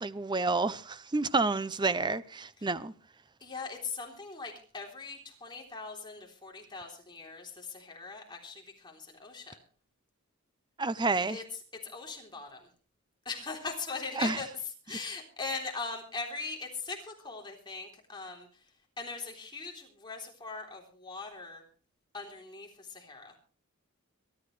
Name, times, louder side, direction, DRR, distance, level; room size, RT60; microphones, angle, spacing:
voice 1, 0.0-2.9 10.8-11.4 14.2-14.4, right 3 dB, 20° right, 0.6 m, -29 dB
voice 2, 3.4-9.6 11.3-11.4 11.8-12.7 13.3-14.5 14.9-18.5 19.0-21.6 22.1-23.3, left 4 dB, 20° left, 3.5 m, -40 dB
23.0 x 13.0 x 3.3 m
head